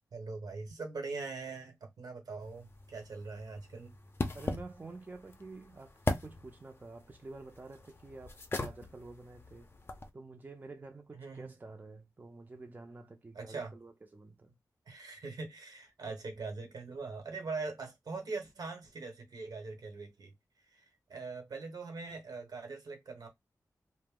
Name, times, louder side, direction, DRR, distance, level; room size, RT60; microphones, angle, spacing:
voice 1, 0.1-4.0 11.1-11.5 13.3-13.8 14.9-20.3 20.7-23.3, right 4 dB, 75° right, 1.0 m, -42 dB
sound 1, 2.4-10.1, left 2 dB, 35° left, 0.5 m, -40 dB
voice 2, 4.3-9.7 10.1-14.6, right 3 dB, 25° right, 0.5 m, -49 dB
2.6 x 2.0 x 3.6 m
wide cardioid pair, 95°, 7 cm